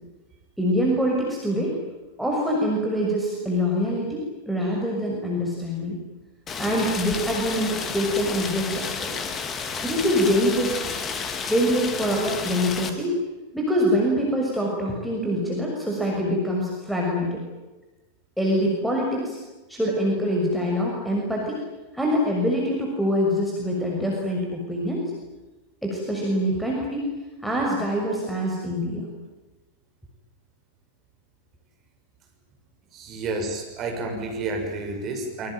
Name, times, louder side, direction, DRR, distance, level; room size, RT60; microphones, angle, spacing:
voice 1, 0.6-1.7 2.2-6.0 6.6-9.1 9.8-10.8 11.5-13.2 13.5-17.4 18.4-19.4 19.7-21.6 21.9-25.0 25.8-27.1 27.4-29.1, equal, ahead, -3 dB, 6.4 m, -24 dB
Rain, 6.5-12.9, left 5 dB, 25° left, 2.8 m, -31 dB
voice 2, 32.9-35.5, right 2 dB, 30° right, 3 dB, 6.6 m, -30 dB
26.5 x 24.0 x 9.2 m, 1.2 s
figure-of-eight pair, 90°, 0 cm